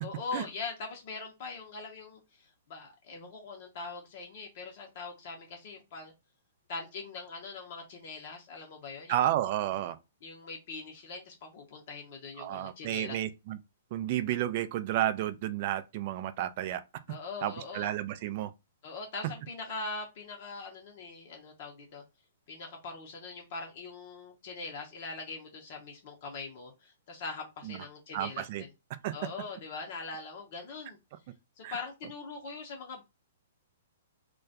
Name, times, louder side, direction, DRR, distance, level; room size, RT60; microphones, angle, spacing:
voice 1, 0.0-6.1 6.7-9.1 10.2-13.2 17.1-17.9 18.8-22.0 22.5-28.7 29.1-31.0 31.6-33.0, left 4 dB, 50° left, 0.6 m, -42 dB
voice 2, 9.1-10.0 12.4-13.6 13.9-16.8 17.4-18.5 27.6-27.8 28.1-28.6 29.0-29.1 31.6-31.8, right 13 dB, 45° right, 0.3 m, -31 dB
2.2 x 2.2 x 2.7 m
figure-of-eight pair, 115°, 0 cm